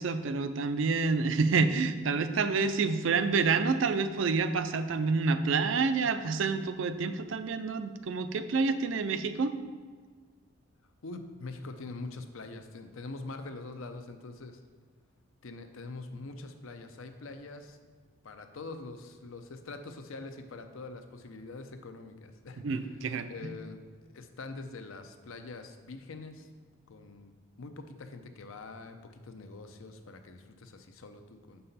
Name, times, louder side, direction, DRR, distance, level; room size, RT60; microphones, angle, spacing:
voice 1, 0.0-9.5 22.6-23.5, right 4 dB, 65° right, 11 dB, 0.4 m, -28 dB
voice 2, 11.0-14.6 15.4-17.8 18.2-26.5 26.9-31.6, left 3 dB, 80° left, 7 dB, 0.6 m, -44 dB
6.6 x 5.5 x 4.1 m, 1.5 s
head